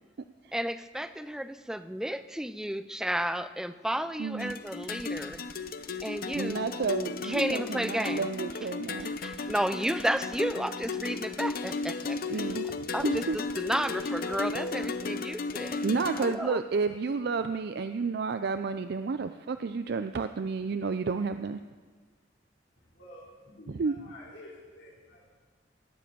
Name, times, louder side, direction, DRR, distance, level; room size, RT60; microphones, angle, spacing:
voice 1, 0.5-5.4 6.0-6.7 7.2-8.3 9.2-12.2 12.9-13.3 13.6-15.8 16.2-16.6, right 1 dB, 5° right, 12 dB, 0.4 m, -32 dB
voice 2, 4.2-4.6 6.3-9.2 12.3-13.4 15.8-21.6 23.7-24.0, right 4 dB, 60° right, 9 dB, 0.4 m, -31 dB
sound 1, 4.4-16.4, left 4 dB, 55° left, 0.7 m, -35 dB
voice 3, 22.9-25.3, left 1 dB, 75° left, -6 dB, 3.1 m, -50 dB
18.5 x 7.6 x 6.8 m, 1.5 s
head